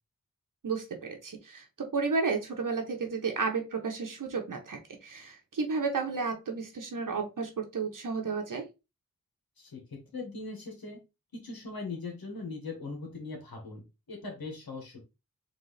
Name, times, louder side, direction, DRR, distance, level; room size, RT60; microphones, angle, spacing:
voice 1, 0.6-8.6, right 4 dB, 60° right, 2 dB, 1.0 m, -32 dB
voice 2, 9.6-11.0 11.3-15.0, left 3 dB, 80° left, 1 dB, 1.9 m, -40 dB
4.0 x 3.3 x 3.3 m, 0.26 s
cardioid pair, 45°, 36 cm